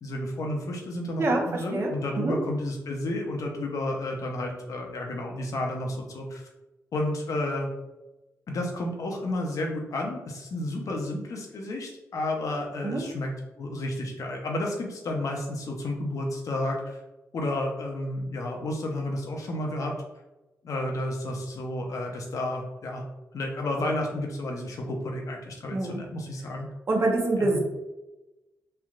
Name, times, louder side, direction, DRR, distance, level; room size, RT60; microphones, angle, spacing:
voice 1, 0.0-6.4 6.9-7.7 8.5-13.3 13.6-17.0 17.3-20.0 20.6-23.0 23.3-26.7 27.4-27.6, left 1 dB, 70° left, 1 dB, 0.7 m, -31 dB
voice 2, 1.2-2.4 12.8-13.0 25.7-26.0 26.9-27.6, right 2 dB, 45° right, 0 dB, 0.8 m, -26 dB
3.2 x 2.8 x 2.4 m, 1.0 s
cardioid pair, 70°, 6 cm